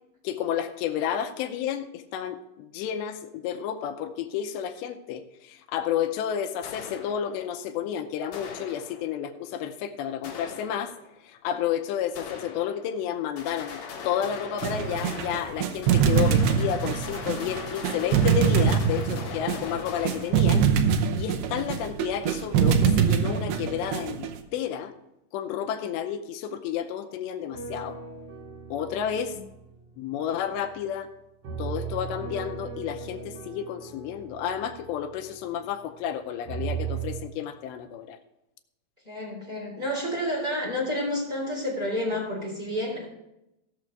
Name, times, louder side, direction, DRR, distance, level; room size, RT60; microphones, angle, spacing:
voice 1, 0.2-10.9 11.2-20.7 21.1-24.9 25.3-28.0 28.7-29.4 30.0-31.1 31.6-38.2, left 9 dB, 80° left, 6 dB, 2.8 m, -31 dB
sound 1, 6.6-7.6 8.3-9.3 10.2-11.2 12.2-13.1 13.4-20.9, left 5 dB, 60° left, 3.0 m, -40 dB
sound 2, 14.6-24.4, right 7 dB, 75° right, 2.7 m, -24 dB
sound 3, 27.5-30.9 31.4-36.1 36.4-37.2, right 6 dB, 50° right, 2.2 m, -37 dB
voice 2, 39.0-43.0, left 1 dB, 10° right, -3 dB, 3.6 m, -30 dB
17.0 x 6.4 x 4.6 m, 0.89 s
omnidirectional pair, 5.2 m